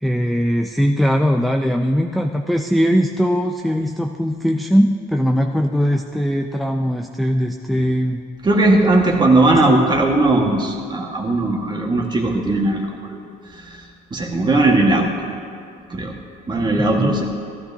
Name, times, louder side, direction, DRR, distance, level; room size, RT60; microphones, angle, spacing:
voice 1, 0.0-8.2 9.5-9.6 16.8-17.1, equal, ahead, 3 dB, 0.4 m, -20 dB
voice 2, 8.4-12.8 13.1-13.2 13.7-13.8 14.1-15.1 15.9-16.1 16.5-17.2, right 2 dB, 25° right, 1 dB, 1.6 m, -17 dB
14.5 x 13.0 x 2.8 m, 2.5 s
cardioid pair, 110°, 17 cm